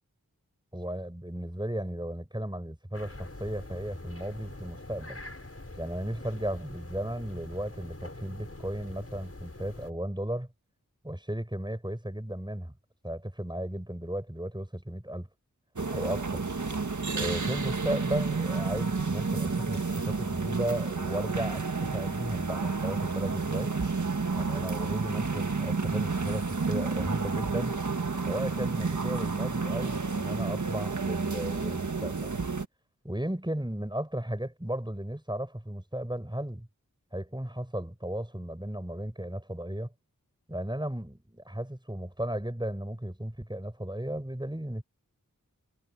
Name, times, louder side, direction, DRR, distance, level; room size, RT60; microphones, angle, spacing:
voice 1, 0.7-5.2 5.8-10.5 11.0-12.7 13.0-15.3 15.9-16.5 17.1-23.8 24.3-27.8 28.2-32.4 33.0-36.7 37.1-39.9 40.5-44.8, right 1 dB, 15° right, 7.5 m, -35 dB
sound 1, 2.9-9.9, left 2 dB, 45° left, 5.5 m, -44 dB
sound 2, 15.8-32.7, right 4 dB, 60° right, 1.6 m, -30 dB
wide cardioid pair, 50°, 33 cm